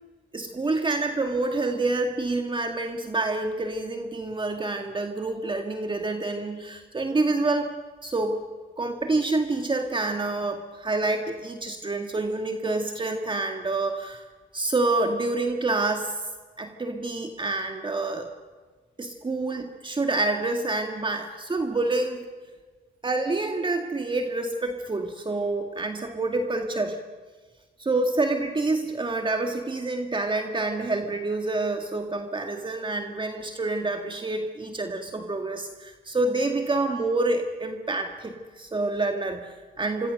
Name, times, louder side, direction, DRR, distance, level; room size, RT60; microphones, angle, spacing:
voice 1, 0.3-7.7 8.0-8.4 8.8-14.3 14.5-16.1 16.6-18.3 19.0-22.3 23.0-27.0 27.8-40.1, right 2 dB, 25° right, 4 dB, 2.0 m, -27 dB
25.5 x 25.0 x 6.6 m, 1.4 s
cardioid pair, 90°, 20 cm